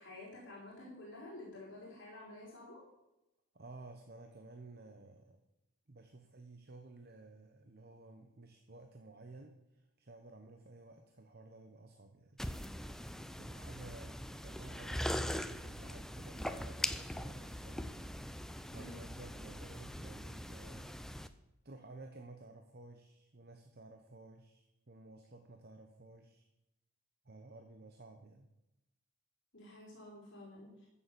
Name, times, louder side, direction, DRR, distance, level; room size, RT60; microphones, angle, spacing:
voice 1, 0.0-2.8 18.7-19.0 29.5-30.9, left 2 dB, 55° left, -4 dB, 4.9 m, -50 dB
voice 2, 3.5-5.4 5.9-12.4 13.4-17.9 18.7-20.9 21.6-26.4 27.2-28.5, right 2 dB, 45° right, 4 dB, 1.0 m, -54 dB
sound 1, 12.4-21.3, equal, ahead, 0.4 m, -41 dB
14.5 x 7.1 x 6.9 m, 0.91 s
head